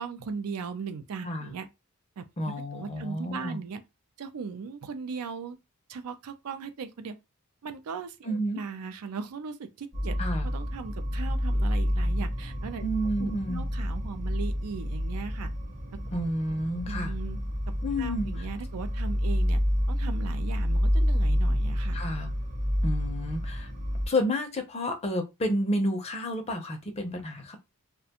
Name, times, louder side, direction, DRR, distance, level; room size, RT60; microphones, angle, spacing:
voice 1, 0.0-1.7 2.2-2.3 2.7-3.8 4.2-5.6 5.9-7.1 7.6-10.2 10.4-15.5 15.9-16.0 16.9-17.4 18.0-19.6 19.9-22.0, right 5 dB, 80° right, 0.4 m, -38 dB
voice 2, 1.2-1.5 2.4-3.6 8.2-8.6 10.2-10.5 12.8-13.7 16.1-17.1 17.8-18.5 21.9-22.3 22.8-23.7 24.0-27.6, equal, 30° left, 0.5 m, -30 dB
sound 1, 9.9-24.1, equal, 35° right, 0.7 m, -29 dB
2.4 x 2.2 x 2.8 m
head